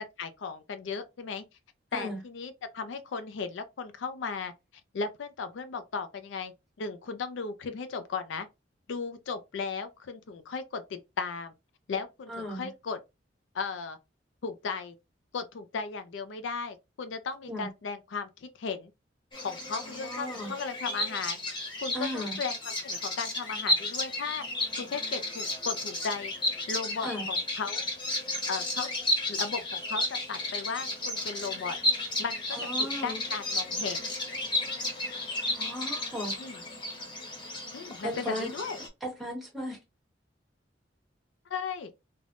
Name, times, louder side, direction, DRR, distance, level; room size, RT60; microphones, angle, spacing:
voice 1, 0.2-1.4 1.9-4.5 4.9-6.5 6.8-8.5 8.9-11.5 11.9-13.0 13.5-14.0 14.4-14.9 15.3-18.9 19.4-21.4 21.8-24.4 24.8-26.3 26.7-27.8 28.5-28.9 29.3-31.8 32.2-34.2 36.4-36.6 37.7-38.8 41.5-41.9, left 5 dB, 75° left, 0.4 m, -36 dB
voice 2, 12.3-12.7 17.5-17.7 19.8-20.5 21.9-22.4 27.0-27.3 32.5-33.2 35.5-36.4 38.0-38.5 39.0-39.8, equal, ahead, 1.2 m, -36 dB
Bird vocalization bird call bird song, 19.3-38.9, left 1 dB, 25° left, 1.0 m, -33 dB
3.3 x 2.1 x 2.5 m
head